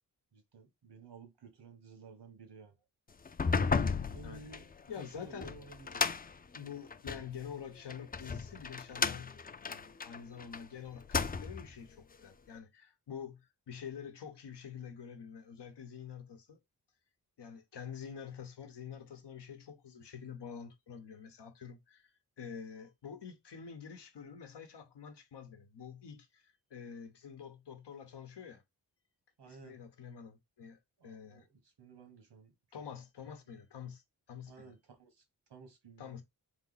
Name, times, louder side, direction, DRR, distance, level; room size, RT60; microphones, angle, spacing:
voice 1, 0.3-2.8 4.1-6.2 29.4-29.8 31.0-32.5 33.5-33.6 34.5-35.2 35.5-36.1, right 4 dB, 90° right, 1.5 m, -54 dB
sound 1, 3.2-7.3 7.9-10.6 11.0-11.7, left 5 dB, 25° left, 0.4 m, -34 dB
voice 2, 4.9-5.5 6.5-9.4 9.7-16.6 17.4-22.1 22.4-28.6 29.5-31.5 32.7-34.0 34.3-34.7 36.0-36.2, left 7 dB, 90° left, 1.0 m, -47 dB
3.5 x 3.0 x 4.0 m
cardioid pair, 65°, 40 cm